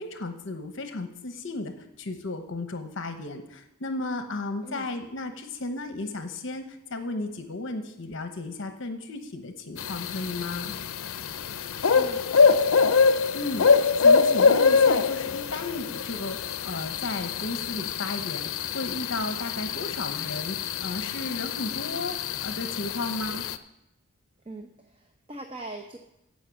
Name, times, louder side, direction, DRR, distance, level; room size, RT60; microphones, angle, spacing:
voice 1, 0.0-10.7 13.3-23.5, left 2 dB, 60° left, 7 dB, 1.0 m, -34 dB
sound 1, 9.8-23.6, left 5 dB, 75° left, 0.6 m, -24 dB
voice 2, 11.9-12.6 24.4-26.0, right 2 dB, 25° right, 4 dB, 0.7 m, -42 dB
15.0 x 5.3 x 7.5 m, 0.87 s
head